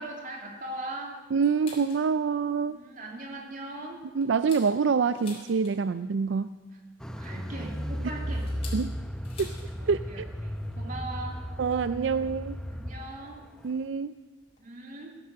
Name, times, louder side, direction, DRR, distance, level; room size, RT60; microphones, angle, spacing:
voice 1, 0.0-1.2 2.7-4.0 7.2-8.5 9.7-11.4 12.7-13.4 14.6-15.1, right 2 dB, 45° right, 0 dB, 2.9 m, -40 dB
voice 2, 1.3-2.8 4.1-6.5 8.7-8.9 9.4-10.3 11.6-12.6 13.6-14.1, right 5 dB, 80° right, 12 dB, 0.4 m, -26 dB
sound 1, 1.4-2.1 2.5-2.6 3.0-3.3 3.7-6.0 7.2-9.8 10.0-10.1 10.5-10.8 11.7-11.8 12.7-12.8 13.6-13.8 14.1-14.2 14.4-14.6, left 4 dB, 35° left, 4.0 m, -49 dB
Car, 7.0-13.2 13.4-13.5, equal, 5° left, 0.7 m, -35 dB
17.0 x 10.5 x 7.6 m, 1.3 s
head